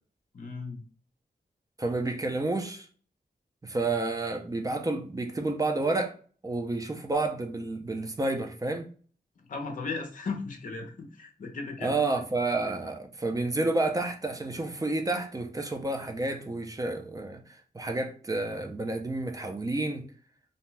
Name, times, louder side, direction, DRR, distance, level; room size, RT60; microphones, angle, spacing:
voice 1, 0.3-0.8 9.5-11.9, left 4 dB, 50° left, 0.6 m, -36 dB
voice 2, 1.8-2.9 3.6-6.2 6.4-8.9 11.8-17.4 17.7-20.0, right 2 dB, 20° right, 0.4 m, -30 dB
2.6 x 2.1 x 3.1 m
wide cardioid pair, 140°, 17 cm